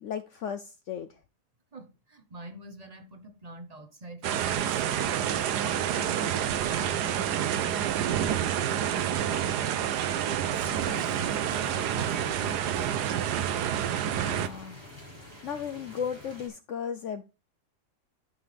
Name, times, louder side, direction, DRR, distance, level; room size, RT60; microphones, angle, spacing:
voice 1, 0.0-1.1 14.1-14.8 15.4-17.2, left 7 dB, 75° left, 0.6 m, -35 dB
voice 2, 1.7-8.8 9.2-11.2 11.9-12.6, right 2 dB, 30° right, 0.7 m, -47 dB
sound 1, 4.2-14.5, right 10 dB, 75° right, 1.2 m, -28 dB
sound 2, 10.6-16.5, left 2 dB, 15° right, 4.1 m, -46 dB
12.5 x 5.7 x 3.3 m
omnidirectional pair, 1.8 m